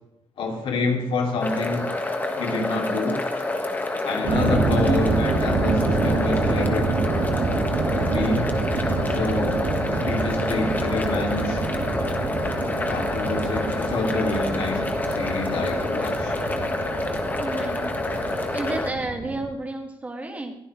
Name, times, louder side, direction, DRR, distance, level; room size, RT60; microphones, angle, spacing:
voice 1, 0.4-1.8 2.3-3.2 4.0-6.9 8.0-8.5 9.0-9.6 10.0-11.7 12.9-16.4, left 3 dB, 85° left, 2.7 m, -27 dB
sound 1, 1.4-18.9, left 2 dB, 20° left, 1.6 m, -28 dB
sound 2, 4.2-19.4, right 3 dB, 75° right, 4.8 m, -27 dB
voice 2, 4.8-5.1 17.4-17.9 18.5-20.6, right 2 dB, 15° right, 2.2 m, -30 dB
22.0 x 15.0 x 3.2 m
wide cardioid pair, 175°, 9 cm